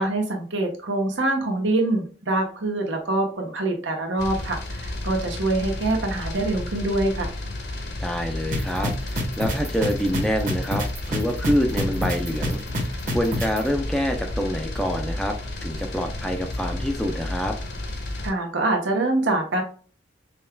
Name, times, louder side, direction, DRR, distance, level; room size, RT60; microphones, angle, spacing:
voice 1, 0.0-7.3 18.2-19.6, right 2 dB, 80° right, 2 dB, 1.0 m, -25 dB
sound 1, 4.2-18.3, left 1 dB, 60° left, 0.8 m, -32 dB
voice 2, 8.0-15.4 15.6-17.6, equal, 5° left, 4 dB, 0.4 m, -26 dB
sound 2, 8.5-13.6, equal, 40° right, 1.1 m, -26 dB
5.3 x 2.3 x 2.2 m, 0.42 s
head